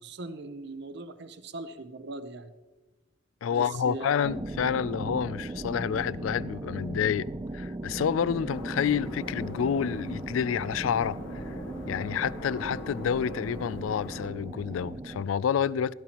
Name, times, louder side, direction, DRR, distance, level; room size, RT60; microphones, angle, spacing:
voice 1, 0.0-2.5 3.5-4.3, right 2 dB, 60° right, 0.7 m, -40 dB
voice 2, 3.4-7.3 7.5-11.5 11.8-15.9, left 7 dB, 85° left, 0.3 m, -29 dB
sound 1, 4.2-15.3, right 2 dB, 20° right, 0.4 m, -38 dB
sound 2, 8.5-14.3, left 1 dB, 70° left, 1.8 m, -42 dB
16.5 x 12.0 x 2.9 m
head